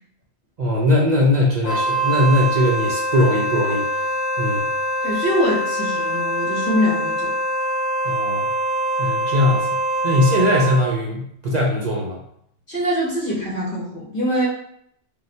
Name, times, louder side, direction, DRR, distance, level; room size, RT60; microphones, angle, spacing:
voice 1, 0.6-3.9 4.4-4.7 8.0-8.4 9.0-9.7 10.0-12.2, left 1 dB, 50° right, -2 dB, 0.7 m, -20 dB
Wind instrument woodwind instrument, 1.6-10.9, right 1 dB, 70° left, 1.0 m, -24 dB
voice 2, 5.0-7.3 12.7-14.5, equal, 55° left, -4 dB, 1.5 m, -23 dB
5.1 x 2.2 x 3.2 m, 0.69 s
omnidirectional pair, 1.1 m